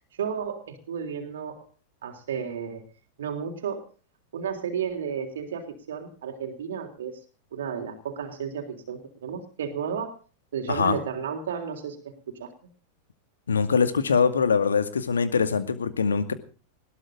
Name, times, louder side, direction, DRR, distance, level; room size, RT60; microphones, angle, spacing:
voice 1, 0.2-1.6 2.0-2.8 3.2-3.8 4.3-7.2 7.5-10.2 10.5-12.5, right 7 dB, 60° right, 4 dB, 3.5 m, -33 dB
voice 2, 13.5-16.3, left 5 dB, 70° left, 11 dB, 2.2 m, -23 dB
20.5 x 18.0 x 3.8 m, 0.38 s
figure-of-eight pair, 90°, 0 cm